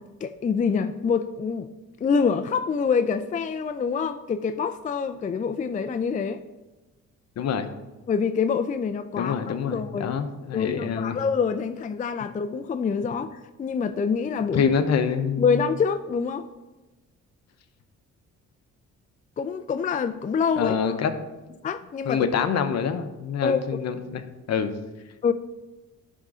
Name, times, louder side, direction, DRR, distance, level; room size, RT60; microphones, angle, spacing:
voice 1, 0.0-1.7 2.0-6.4 8.1-9.4 9.7-10.2 10.5-14.7 15.4-16.5 19.4-21.0 21.6-22.3 23.4-23.6 25.2-25.3, left 6 dB, 25° left, 9 dB, 0.4 m, -26 dB
voice 2, 7.4-7.7 9.2-11.1 14.5-15.4 20.6-21.1 22.0-24.7, left 6 dB, 60° left, 9 dB, 0.8 m, -26 dB
10.5 x 3.7 x 5.0 m, 1.1 s
cardioid pair, 90°, 30 cm